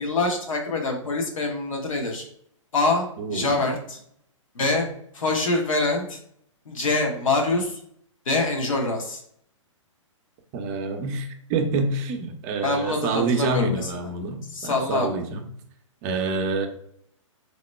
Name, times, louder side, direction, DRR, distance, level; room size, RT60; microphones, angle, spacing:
voice 1, 0.0-2.2 2.7-4.0 4.5-4.9 5.1-6.2 6.6-7.8 8.2-9.2 12.6-13.9 14.5-15.1, left 3 dB, 80° left, 1 dB, 1.0 m, -25 dB
voice 2, 3.2-3.7 10.5-15.5 16.0-16.7, right 3 dB, 30° right, 5 dB, 0.5 m, -27 dB
2.9 x 2.1 x 4.1 m, 0.66 s
hypercardioid pair, 135°, 17 cm